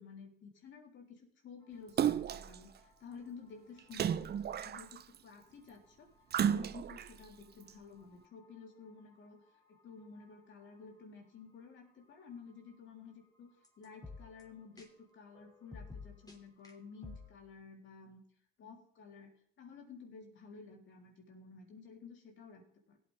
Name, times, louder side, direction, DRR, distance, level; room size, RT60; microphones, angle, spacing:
voice 1, 0.0-6.1 6.4-9.4 9.8-18.2 18.6-23.0, left 5 dB, 70° left, 1 dB, 3.7 m, -53 dB
sound 1, 1.6-17.4, left 4 dB, 20° left, 3.0 m, -58 dB
Splash splatter, 2.0-2.6 3.9-5.2 6.3-7.1 7.7-7.8, right 9 dB, 55° right, 0.7 m, -33 dB
17.0 x 8.5 x 3.6 m, 0.62 s
cardioid pair, 90°, 20 cm